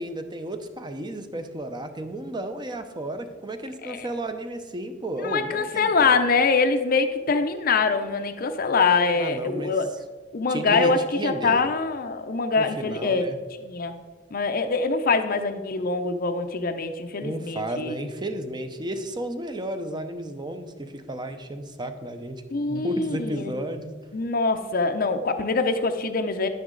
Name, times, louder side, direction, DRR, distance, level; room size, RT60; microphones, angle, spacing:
voice 1, 0.0-6.2 9.1-9.8 10.5-11.6 12.6-13.4 17.2-22.4 22.7-23.9, right 1 dB, 25° right, 7 dB, 0.8 m, -33 dB
voice 2, 5.2-9.9 10.3-13.3 13.6-13.9 14.3-17.9 22.5-23.5 24.1-26.5, left 4 dB, 50° left, 6 dB, 0.6 m, -24 dB
10.5 x 9.3 x 3.9 m, 1.3 s
head